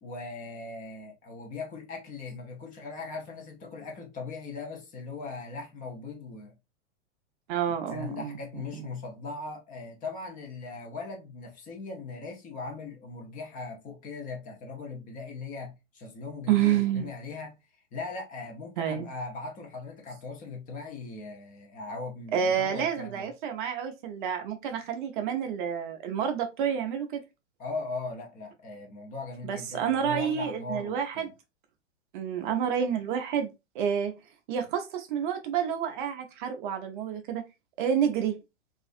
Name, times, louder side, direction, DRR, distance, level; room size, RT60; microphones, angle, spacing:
voice 1, 0.0-6.5 7.7-17.6 17.9-23.3 27.6-31.3, left 3 dB, 20° left, 0.6 m, -39 dB
voice 2, 7.5-8.4 8.8-8.9 16.5-17.1 18.8-19.1 22.3-27.2 29.4-31.3 32.1-34.1 34.5-37.4 37.8-38.4, right 8 dB, 45° right, 0.5 m, -29 dB
2.4 x 2.4 x 2.4 m
hypercardioid pair, 110°, 37 cm